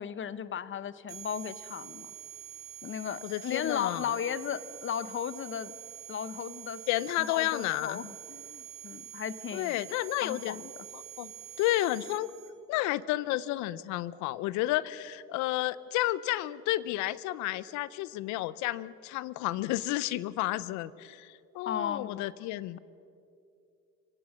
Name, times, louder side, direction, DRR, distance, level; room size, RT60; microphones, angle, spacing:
voice 1, 0.0-2.1 2.8-5.7 6.1-6.8 7.2-9.8 10.2-10.7 21.7-22.2, left 8 dB, 45° left, 16 dB, 1.0 m, -35 dB
sound 1, 1.1-12.5, right 10 dB, 50° right, 5.7 m, -46 dB
voice 2, 3.2-4.1 6.9-8.0 9.5-10.6 10.9-11.3 11.6-12.3 12.7-22.8, left 16 dB, 80° left, 19 dB, 0.7 m, -31 dB
26.5 x 17.0 x 6.3 m, 2.5 s
supercardioid pair, 70°, 29 cm